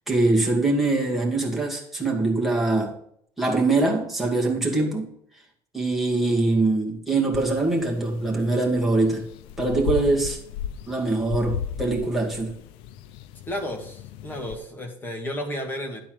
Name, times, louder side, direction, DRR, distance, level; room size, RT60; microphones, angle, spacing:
voice 1, 0.1-3.0 3.4-5.1 5.7-9.2 9.6-10.4 10.9-12.5, right 2 dB, ahead, 2.3 m, -23 dB
sound 1, 7.3-14.6, left 9 dB, 85° left, 0.5 m, -36 dB
voice 2, 13.5-16.0, equal, 20° left, 1.9 m, -32 dB
11.0 x 4.3 x 7.7 m
cardioid pair, 150°, 9 cm